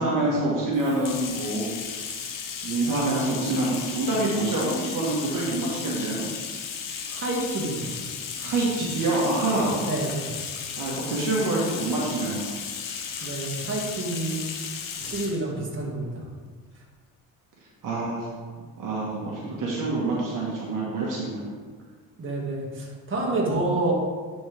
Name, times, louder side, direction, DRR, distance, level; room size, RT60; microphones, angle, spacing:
voice 1, 0.0-2.1 2.6-6.3 8.4-9.8 10.8-12.5 17.8-18.3 18.8-21.4, right 2 dB, 60° right, -5 dB, 1.7 m, -26 dB
Bathtub (filling or washing), 0.7-15.4, left 6 dB, 60° left, 1.1 m, -35 dB
voice 2, 7.1-8.0 9.9-10.3 13.2-14.4 15.0-16.2 21.4-21.5 22.2-23.9, right 2 dB, 30° right, -3 dB, 2.1 m, -28 dB
10.0 x 4.4 x 3.6 m, 1.5 s
cardioid pair, 95°, 37 cm